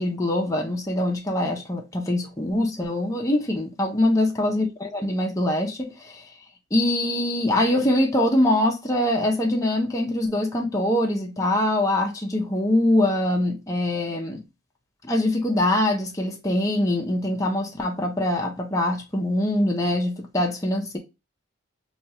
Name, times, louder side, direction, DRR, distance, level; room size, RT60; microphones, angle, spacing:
voice 1, 0.0-6.3 6.7-14.4 15.0-21.0, left 1 dB, 15° left, 0.6 m, -23 dB
4.3 x 2.3 x 2.7 m
head